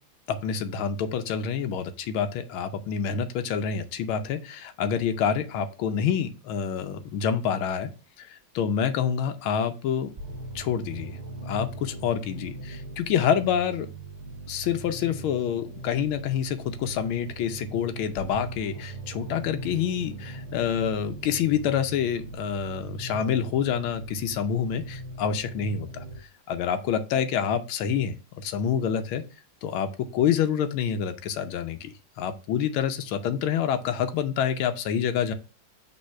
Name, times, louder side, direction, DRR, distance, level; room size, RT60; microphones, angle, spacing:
voice 1, 0.3-7.9 8.2-10.1 10.5-13.9 14.5-29.2 29.6-35.3, left 8 dB, 85° left, 7 dB, 1.6 m, -27 dB
sound 1, 10.2-26.2, right 2 dB, 25° right, 1.1 m, -40 dB
5.5 x 3.5 x 5.5 m, 0.33 s
omnidirectional pair, 2.2 m